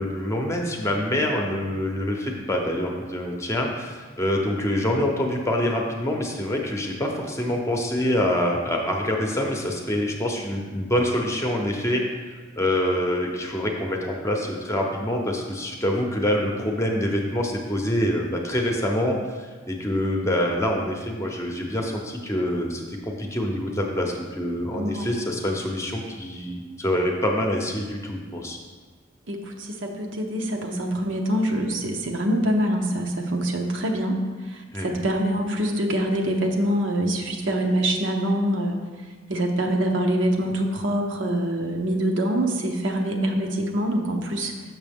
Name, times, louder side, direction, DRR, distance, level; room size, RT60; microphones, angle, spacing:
voice 1, 0.0-12.0 12.6-19.2 19.7-22.8 23.2-28.6 34.7-34.9, left 1 dB, 15° left, 0 dB, 0.8 m, -25 dB
voice 2, 24.7-25.1 29.3-34.2 34.4-38.8 39.3-44.5, right 1 dB, 75° right, 2 dB, 0.8 m, -25 dB
6.6 x 6.2 x 3.5 m, 1.4 s
head